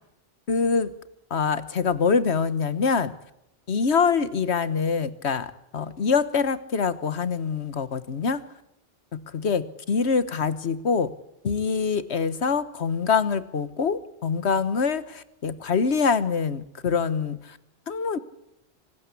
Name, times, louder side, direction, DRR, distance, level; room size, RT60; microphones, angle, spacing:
voice 1, 0.5-0.9 1.3-3.1 3.7-8.4 9.1-11.1 11.4-17.6 17.9-18.2, left 5 dB, 85° left, 14 dB, 1.5 m, -25 dB
25.5 x 19.5 x 8.4 m, 0.83 s
omnidirectional pair, 1.1 m